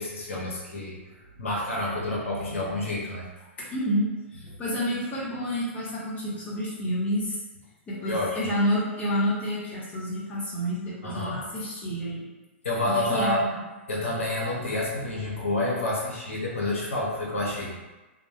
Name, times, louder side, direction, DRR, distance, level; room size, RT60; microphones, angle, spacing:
voice 1, 0.0-3.2 8.0-8.5 11.0-11.4 12.6-13.4 13.9-17.7, left 2 dB, 80° left, -4 dB, 0.7 m, -29 dB
voice 2, 3.6-7.4 7.9-12.3 12.9-13.5, equal, 20° left, -7 dB, 0.9 m, -29 dB
2.2 x 2.0 x 2.7 m, 1.1 s
hypercardioid pair, 115°, 7 cm